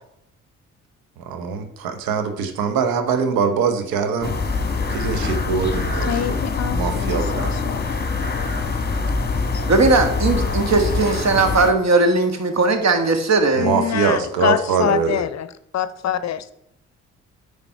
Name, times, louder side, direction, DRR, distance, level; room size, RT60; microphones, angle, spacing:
voice 1, 1.3-4.3 4.9-6.3 6.7-7.5 13.6-15.2, right 6 dB, 65° right, 8 dB, 1.1 m, -23 dB
sound 1, 4.2-11.7, left 4 dB, 25° left, 1.3 m, -24 dB
voice 2, 5.9-7.9 13.6-15.5 15.7-16.5, left 9 dB, 45° left, 14 dB, 0.6 m, -25 dB
voice 3, 9.7-13.7, right 3 dB, 45° right, 7 dB, 1.6 m, -18 dB
9.0 x 5.2 x 4.5 m, 0.77 s
hypercardioid pair, 40°, 37 cm